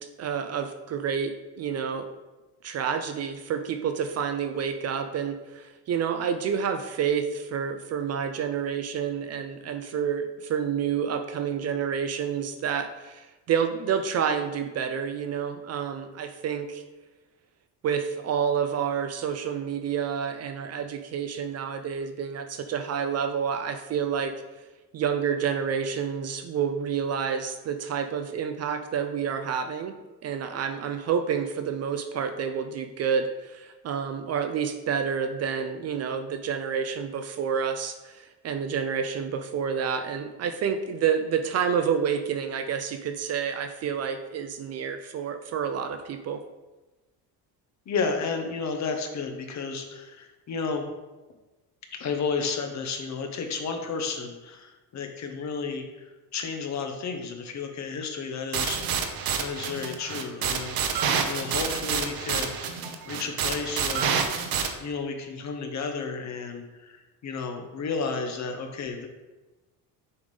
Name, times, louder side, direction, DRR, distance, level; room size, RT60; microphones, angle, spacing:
voice 1, 0.2-2.1 2.6-16.8 17.8-24.3 24.9-29.9 30.2-46.4, right 7 dB, 45° right, 8 dB, 0.4 m, -29 dB
voice 2, 47.9-50.8 51.9-56.0 56.3-64.5 64.8-69.1, left 5 dB, 45° left, 4 dB, 1.0 m, -32 dB
sound 1, 58.5-64.7, right 6 dB, 65° right, 0.8 m, -28 dB
6.9 x 3.5 x 5.3 m, 1.1 s
cardioid pair, 145°, 38 cm